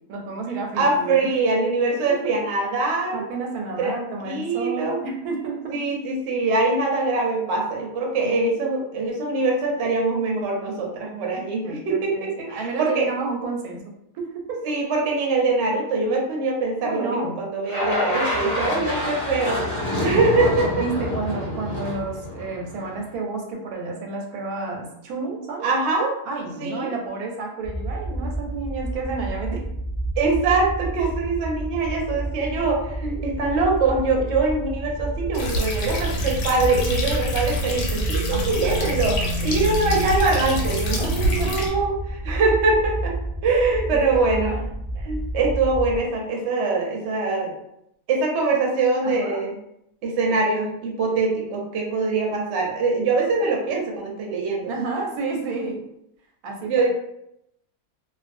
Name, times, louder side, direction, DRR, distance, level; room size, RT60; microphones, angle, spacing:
voice 1, 0.1-1.3 2.1-2.3 3.1-5.8 8.2-8.3 11.3-13.8 14.1-14.7 16.8-17.4 19.9-20.2 20.4-25.7 26.3-29.6 38.3-38.6 39.4-39.8 41.0-41.7 43.5-44.6 44.9-45.1 49.0-49.4 50.3-50.4 54.7-55.8 56.4-56.9, right 4 dB, 90° right, 1 dB, 1.1 m, -31 dB
voice 2, 0.8-3.2 3.8-5.0 5.7-13.1 14.6-19.6 20.0-20.9 25.6-26.2 26.6-26.9 30.2-41.9 42.2-43.1 43.4-44.5 45.0-47.5 48.1-49.5 50.0-54.7 55.6-55.7 56.7-56.9, right 3 dB, 60° right, 0 dB, 0.8 m, -23 dB
sound 1, 17.7-23.0, left 1 dB, 50° left, 0.9 m, -27 dB
sound 2, 27.6-46.0, right 1 dB, 5° left, 0.4 m, -30 dB
sound 3, 35.3-41.7, equal, 85° left, 1.1 m, -26 dB
2.4 x 2.2 x 2.5 m, 0.79 s
omnidirectional pair, 1.6 m